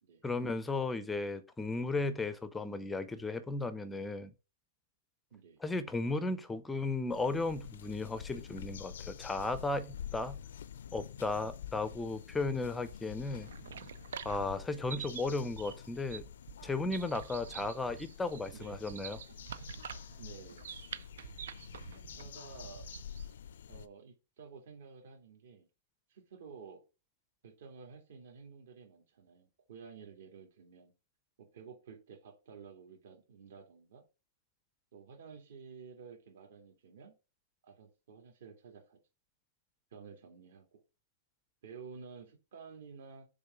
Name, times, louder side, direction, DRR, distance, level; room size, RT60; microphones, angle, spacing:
voice 1, 0.2-4.3 5.6-10.4 10.9-13.5 14.2-16.3 16.6-19.2, left 3 dB, 5° left, 0.5 m, -35 dB
sound 1, 7.1-23.9, left 9 dB, 75° left, 0.5 m, -48 dB
sound 2, 13.2-23.3, right 8 dB, 80° right, 0.5 m, -47 dB
voice 2, 20.2-20.7 22.2-22.9 23.7-25.7 26.1-26.8 27.4-30.9 31.4-34.1 34.9-37.1 37.6-39.0 39.9-40.8 41.6-43.3, right 5 dB, 65° right, 2.5 m, -52 dB
6.9 x 3.6 x 5.7 m
supercardioid pair, 170°, 0 cm